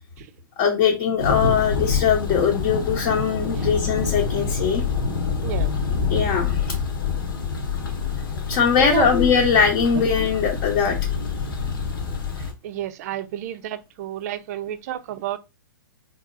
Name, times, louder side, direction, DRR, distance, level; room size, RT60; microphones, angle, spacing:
voice 1, 0.6-4.8 6.1-6.6 8.5-10.9, left 6 dB, 35° left, 0.9 m, -21 dB
Thunder, 1.2-12.5, left 5 dB, 75° left, 1.2 m, -26 dB
voice 2, 12.6-15.4, right 12 dB, 45° right, 0.5 m, -30 dB
4.0 x 3.0 x 2.5 m
hypercardioid pair, 140°, 11 cm